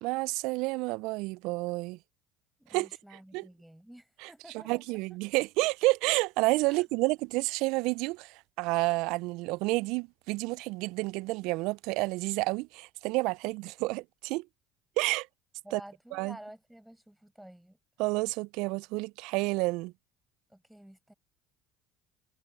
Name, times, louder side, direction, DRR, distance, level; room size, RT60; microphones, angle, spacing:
voice 1, 0.0-2.0 2.7-2.9 3.3-3.5 4.2-4.3 4.7-14.5 15.0-15.3 15.7-15.8 16.1-16.4 18.0-19.9, right 23 dB, 70° right, 0.4 m, -30 dB
voice 2, 2.6-4.9 6.6-6.9 15.6-17.8 20.5-21.1, right 1 dB, 5° right, 5.2 m, -51 dB
hypercardioid pair, 70°, 0 cm